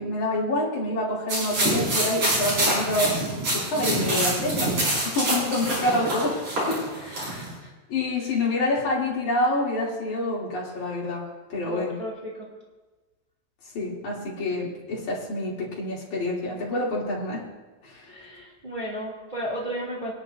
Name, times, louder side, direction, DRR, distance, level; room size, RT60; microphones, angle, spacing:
voice 1, 0.0-3.1 3.5-4.7 5.0-6.4 6.7-6.8 7.3-7.4 7.9-11.2 11.5-12.0 13.7-17.4 17.8-18.1, left 2 dB, 80° left, -5 dB, 4.4 m, -27 dB
sound 1, 1.3-7.5, right 1 dB, 60° right, 6.7 m, -26 dB
voice 2, 7.0-7.7 8.1-8.3 11.6-12.5 18.1-20.1, equal, 15° right, -5 dB, 2.5 m, -35 dB
26.5 x 10.0 x 2.6 m, 1.2 s
omnidirectional pair, 3.4 m